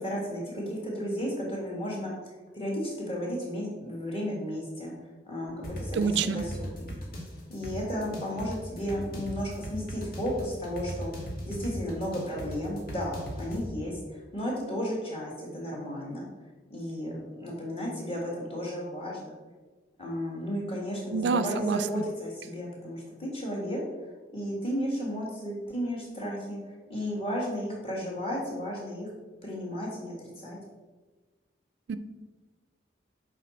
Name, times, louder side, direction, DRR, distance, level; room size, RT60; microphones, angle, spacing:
voice 1, 0.0-2.1 2.5-4.9 5.2-7.0 7.5-16.2 16.7-19.3 20.0-29.1 29.4-30.6, equal, 30° left, -3 dB, 1.8 m, -34 dB
sound 1, 5.6-13.6, equal, 50° left, 1.5 m, -38 dB
voice 2, 5.9-6.5 21.1-22.0 31.9-32.0, right 5 dB, 70° right, 11 dB, 0.4 m, -27 dB
6.8 x 4.8 x 4.2 m, 1.3 s
head